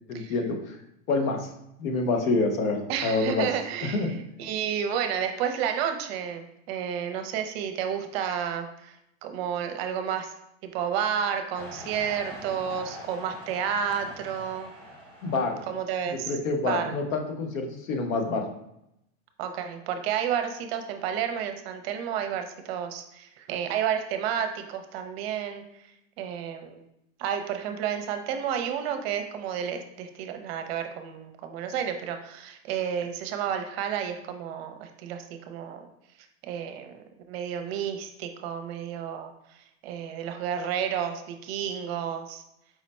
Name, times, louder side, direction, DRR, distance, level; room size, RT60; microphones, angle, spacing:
voice 1, 0.1-0.8 1.1-1.5 1.8-3.5 3.8-4.1 15.2-15.6 16.3-18.5, left 3 dB, 90° left, 4 dB, 0.9 m, -27 dB
voice 2, 2.9-9.0 9.2-10.3 10.6-14.7 15.7-16.3 16.6-16.9 19.4-25.6 26.2-26.8 27.2-35.8 36.4-37.0 37.3-39.3 39.8-42.4, right 8 dB, 50° right, 7 dB, 0.6 m, -31 dB
sound 1, 11.6-15.9, equal, 5° left, 0.8 m, -44 dB
4.8 x 2.1 x 4.1 m, 0.82 s
supercardioid pair, 145°, 39 cm